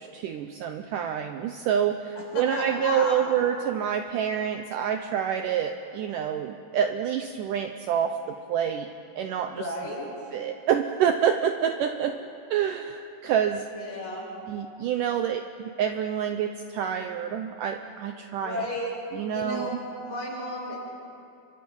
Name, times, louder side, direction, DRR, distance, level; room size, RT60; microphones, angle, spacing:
voice 1, 0.0-8.9 9.2-9.7 10.3-12.2 12.5-13.6 14.5-18.7 19.1-19.7, right 8 dB, 80° right, 6 dB, 2.0 m, -27 dB
voice 2, 2.3-3.3 9.6-10.1 13.8-14.3 18.4-18.9 19.2-20.8, left 1 dB, 60° left, -5 dB, 8.8 m, -33 dB
29.5 x 24.5 x 5.5 m, 2.7 s
omnidirectional pair, 4.6 m